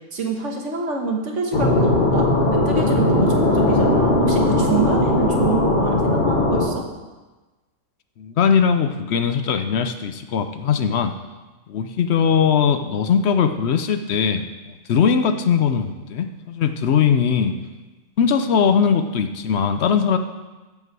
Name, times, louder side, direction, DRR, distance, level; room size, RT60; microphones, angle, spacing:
voice 1, 0.1-6.8, right 4 dB, 60° right, 2 dB, 1.5 m, -26 dB
sound 1, 1.5-6.7, left 2 dB, 35° left, 1.3 m, -18 dB
voice 2, 8.2-11.2 11.7-14.5 14.9-17.6 18.2-20.2, left 7 dB, 60° left, 8 dB, 0.8 m, -20 dB
13.5 x 5.6 x 4.7 m, 1.2 s
omnidirectional pair, 1.5 m